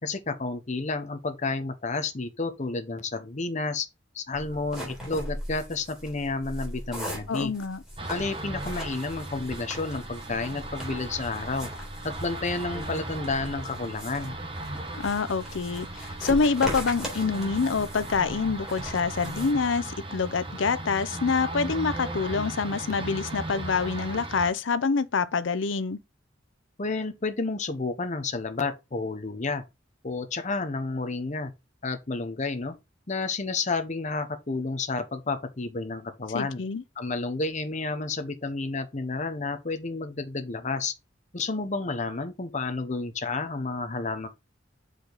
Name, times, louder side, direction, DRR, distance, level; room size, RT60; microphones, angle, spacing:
voice 1, 0.0-3.9 4.1-7.5 8.1-11.7 12.0-14.3 26.8-29.6 30.0-31.5 31.8-32.7 33.1-36.6 37.0-40.9 41.3-44.3, left 3 dB, 40° left, 1.0 m, -31 dB
sound 1, 4.3-19.5, equal, 5° right, 3.8 m, -40 dB
voice 2, 7.3-7.8 14.9-26.0 36.3-36.8, left 4 dB, 85° left, 0.6 m, -26 dB
sound 2, 8.0-24.5, right 2 dB, 30° right, 1.3 m, -37 dB
6.7 x 5.1 x 3.9 m
head